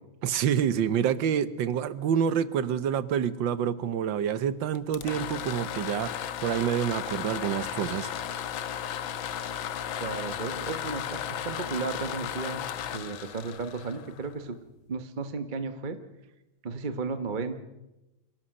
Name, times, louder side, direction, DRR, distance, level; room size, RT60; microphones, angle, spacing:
voice 1, 0.2-6.1 6.4-8.1, right 8 dB, 70° right, 15 dB, 1.6 m, -27 dB
sound 1, 4.8-14.6, left 9 dB, 80° left, 1.7 m, -35 dB
voice 2, 10.0-12.6 12.9-14.6 14.9-16.0 16.6-17.6, right 4 dB, 30° right, 9 dB, 1.0 m, -34 dB
25.0 x 17.5 x 6.5 m, 0.97 s
omnidirectional pair, 2.2 m